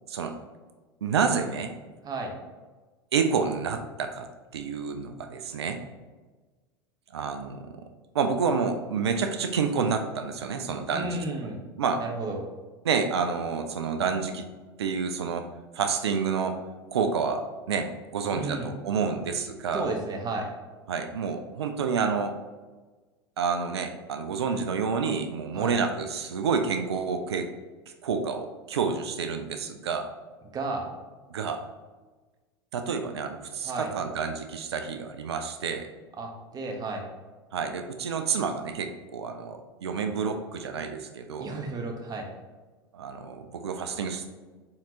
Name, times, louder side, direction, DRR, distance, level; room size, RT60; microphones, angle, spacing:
voice 1, 1.0-1.7 3.1-4.3 4.5-5.8 7.1-7.8 8.1-11.2 11.8-12.0 12.8-14.5 14.8-15.5 15.7-16.6 16.9-19.9 20.9-22.4 23.4-27.5 28.0-30.1 31.3-31.6 32.7-35.9 37.5-41.5 42.9-44.3, right 5 dB, 80° right, 6 dB, 0.4 m, -29 dB
voice 2, 10.9-11.6 12.0-12.4 18.3-18.7 19.7-20.5 25.5-25.7 30.5-30.9 33.6-33.9 36.2-37.0 41.4-42.3, right 2 dB, 30° right, 2 dB, 1.0 m, -33 dB
4.4 x 3.7 x 2.8 m, 1.3 s
hypercardioid pair, 85°, 14 cm